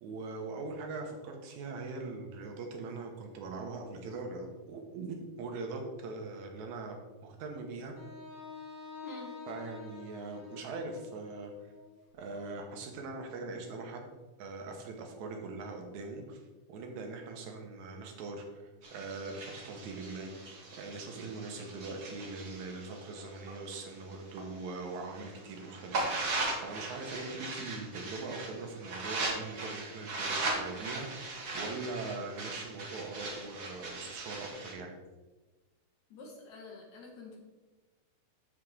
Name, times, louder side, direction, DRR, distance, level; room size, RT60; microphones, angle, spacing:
voice 1, 0.0-7.0 7.2-7.9 9.5-11.7 12.2-14.1 14.4-16.4 16.7-18.6 18.9-20.3 20.7-35.0, right 3 dB, 70° right, 3 dB, 2.4 m, -41 dB
Wind instrument woodwind instrument, 8.0-12.0, left 5 dB, 40° left, 1.8 m, -48 dB
voice 2, 9.0-9.4 36.1-37.4, left 2 dB, 70° left, -1 dB, 2.7 m, -47 dB
sound 1, 18.8-24.4 24.8-34.7, right 2 dB, 45° right, 1.3 m, -39 dB
13.0 x 4.8 x 3.6 m, 1.2 s
omnidirectional pair, 3.5 m